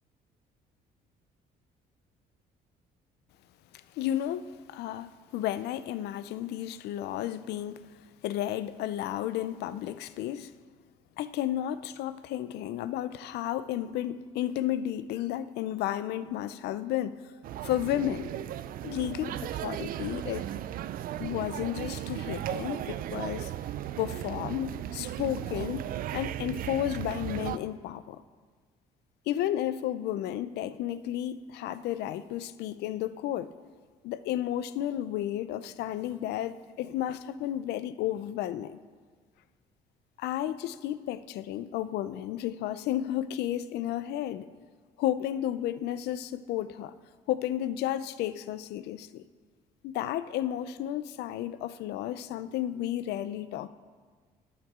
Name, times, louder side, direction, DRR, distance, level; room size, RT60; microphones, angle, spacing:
voice 1, 3.9-7.9 8.2-10.5 11.2-17.3 17.6-18.3 18.8-20.5 21.2-23.5 24.0-28.2 29.3-33.5 34.0-38.8 40.2-44.5 45.0-46.9 47.3-49.2 49.8-53.7, left 12 dB, 80° left, 0.5 m, -32 dB
sound 1, 17.4-27.6, right 12 dB, 60° right, 0.4 m, -36 dB
12.5 x 8.7 x 3.7 m
cardioid pair, 110°, 17 cm